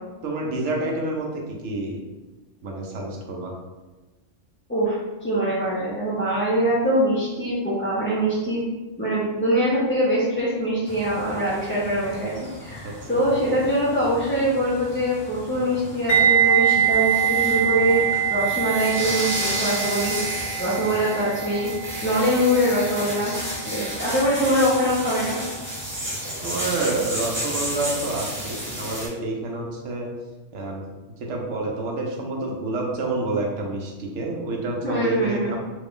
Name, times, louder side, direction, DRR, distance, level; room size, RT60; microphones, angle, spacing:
voice 1, 0.2-2.0 2.6-3.5 12.8-13.2 26.4-30.1 30.5-30.8 31.2-35.6, right 2 dB, 70° right, 0 dB, 1.0 m, -28 dB
voice 2, 4.7-8.6 9.0-12.3 12.6-18.0 18.3-20.1 20.6-21.7 22.0-23.3 23.6-25.4 34.8-35.6, equal, 15° left, -10 dB, 0.4 m, -23 dB
sound 1, 10.9-29.1, equal, 10° right, 0.8 m, -33 dB
sound 2, 16.1-25.0 25.3-25.6, right 9 dB, 55° left, 0.8 m, -24 dB
3.1 x 2.3 x 3.6 m, 1.2 s
omnidirectional pair, 1.3 m